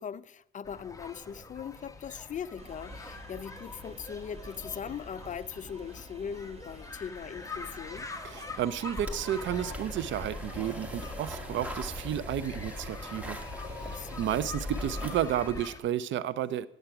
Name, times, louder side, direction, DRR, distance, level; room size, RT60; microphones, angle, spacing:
voice 1, 0.0-8.1 13.8-14.3, left 7 dB, 40° left, 0.4 m, -40 dB
sound 1, 0.6-15.8, left 4 dB, 15° left, 1.0 m, -46 dB
sound 2, 2.6-12.2, right 2 dB, 30° right, 1.4 m, -50 dB
voice 2, 8.2-16.7, right 11 dB, 70° right, 0.5 m, -32 dB
sound 3, 9.0-15.6, left 1 dB, 5° right, 1.6 m, -39 dB
9.1 x 7.9 x 5.8 m
cardioid pair, 90°, 20 cm